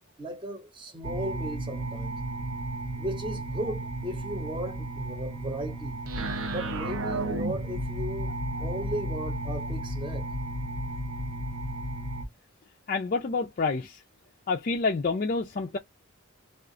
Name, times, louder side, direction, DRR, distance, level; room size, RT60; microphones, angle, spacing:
voice 1, 0.2-2.2 3.0-6.0 6.5-8.3 8.6-10.3, equal, 20° right, 0.8 m, -36 dB
sound 1, 1.0-12.2, right 1 dB, 75° right, 0.7 m, -33 dB
voice 2, 12.9-14.0 14.5-15.8, left 4 dB, 40° left, 0.4 m, -28 dB
2.4 x 2.4 x 3.7 m
head